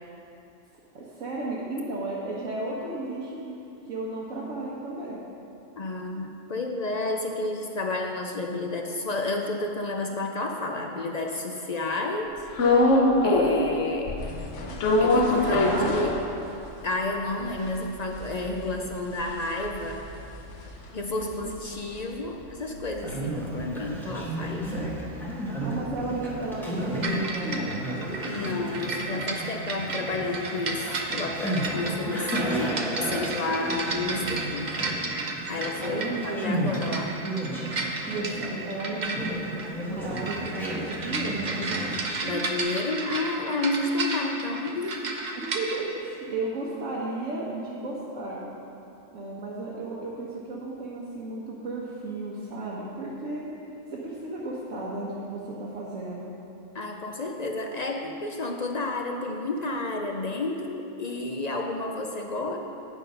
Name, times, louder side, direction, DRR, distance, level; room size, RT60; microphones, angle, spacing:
voice 1, 0.9-3.4 3.9-5.2 15.2-16.1 21.1-21.8 25.6-27.8 31.7-32.6 35.8-36.6 38.1-41.8 45.4-48.5 49.1-53.5 53.9-56.3, right 2 dB, 80° right, -6 dB, 1.5 m, -34 dB
voice 2, 5.8-12.3 12.8-14.2 15.0-16.1 16.8-20.1 20.9-24.8 28.2-34.9 35.5-37.2 42.2-45.0 50.5-50.6 56.7-62.6, left 2 dB, 50° left, 2 dB, 0.5 m, -31 dB
sound 1, 12.5-13.7 14.1-16.6 17.0-17.1 17.3-21.8 22.1-26.2, left 2 dB, 70° left, 1.2 m, -25 dB
Conversation, 22.9-42.6, right 1 dB, ahead, 1.2 m, -33 dB
sound 2, 27.0-45.8, right 3 dB, 40° right, 0.8 m, -33 dB
9.1 x 6.3 x 5.4 m, 2.8 s
omnidirectional pair, 1.3 m